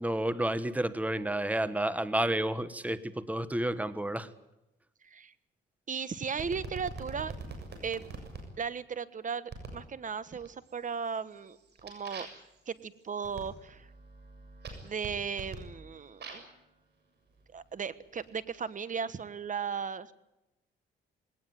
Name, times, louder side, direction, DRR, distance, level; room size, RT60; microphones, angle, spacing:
voice 1, 0.0-4.3, right 1 dB, 5° right, 14 dB, 1.4 m, -30 dB
voice 2, 5.0-5.3 5.9-7.3 7.8-8.1 8.6-12.3 12.7-13.9 14.8-16.4 17.5-20.1, right 6 dB, 40° right, 16 dB, 1.4 m, -36 dB
sound 1, 6.4-8.4 9.5-9.9 10.3-10.8 11.2-16.6 17.4-18.6, right 4 dB, 55° right, 7.0 m, -45 dB
20.0 x 18.5 x 9.5 m, 0.93 s
cardioid pair, 90°, 20 cm